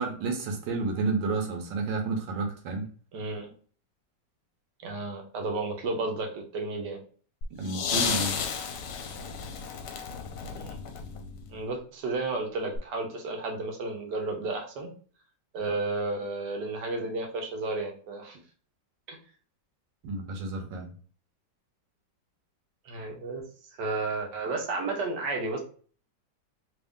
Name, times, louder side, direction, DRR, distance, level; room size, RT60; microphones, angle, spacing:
voice 1, 0.0-2.9 7.6-8.4 20.0-20.9, right 3 dB, 85° right, 4 dB, 1.5 m, -30 dB
voice 2, 3.1-3.5 4.8-7.0 10.6-10.8 11.5-14.9 15.5-18.4 19.1-19.2 22.8-23.4 23.8-25.6, right 3 dB, 70° right, 2 dB, 1.5 m, -32 dB
sound 1, 7.4-11.6 12.8-12.9, left 6 dB, 70° left, 1.2 m, -33 dB
3.4 x 2.6 x 3.5 m, 0.42 s
omnidirectional pair, 1.9 m